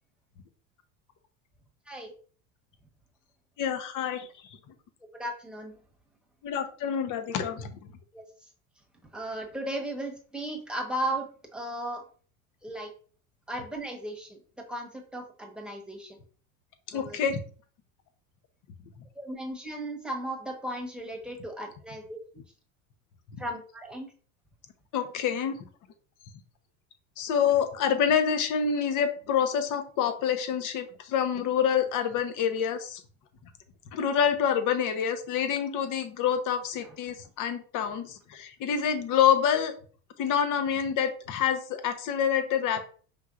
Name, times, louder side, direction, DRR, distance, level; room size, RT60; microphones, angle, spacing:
voice 1, 3.6-4.3 6.4-7.7 16.9-17.4 23.3-23.4 24.9-25.7 27.2-33.0 33.9-39.7 40.2-42.9, left 8 dB, 50° left, 8 dB, 0.9 m, -27 dB
voice 2, 5.1-5.7 8.1-8.2 9.1-12.0 12.6-12.9 13.5-14.4 14.7-16.2 16.9-17.2 19.1-22.2 23.4-24.1 36.8-37.0, right 1 dB, ahead, 1 dB, 1.2 m, -36 dB
5.3 x 3.2 x 2.5 m, 0.42 s
hypercardioid pair, 90°, 41 cm